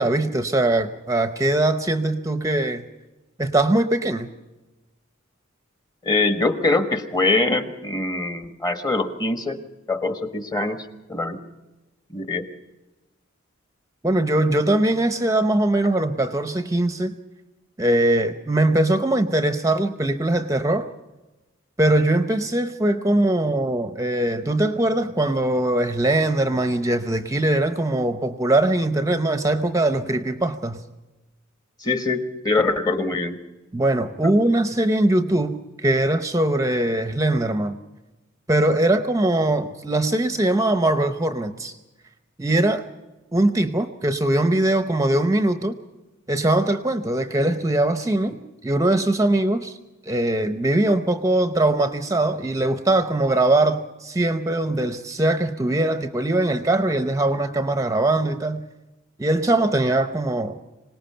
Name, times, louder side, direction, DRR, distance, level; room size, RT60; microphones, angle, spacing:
voice 1, 0.0-2.8 3.4-4.3 14.0-17.2 17.8-20.9 21.8-30.8 33.7-37.8 38.5-41.7 42.4-42.8 43.3-45.8 46.3-48.4 48.6-49.8 50.1-58.6 59.2-60.6, right 1 dB, 15° right, 8 dB, 0.8 m, -21 dB
voice 2, 6.0-9.6 9.9-11.4 12.1-12.4 31.8-33.4, left 3 dB, 20° left, 7 dB, 1.4 m, -23 dB
26.0 x 18.5 x 5.7 m, 1.1 s
head